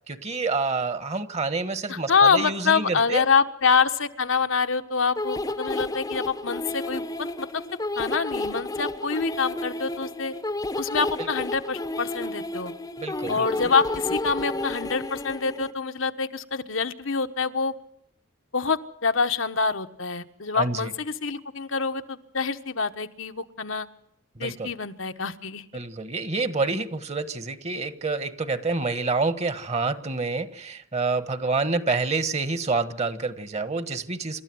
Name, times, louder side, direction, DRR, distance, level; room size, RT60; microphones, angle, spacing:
voice 1, 0.1-3.2 11.2-11.3 13.0-13.5 20.5-20.9 24.4-24.7 25.7-34.4, right 3 dB, 35° right, 13 dB, 1.3 m, -28 dB
voice 2, 1.9-7.6 8.0-10.3 10.8-12.7 13.3-17.8 18.5-23.9 24.4-25.6, left 5 dB, 75° left, 8 dB, 1.3 m, -26 dB
sound 1, 5.2-15.7, left 2 dB, 20° left, 0.8 m, -31 dB
28.5 x 13.0 x 7.9 m, 0.73 s
head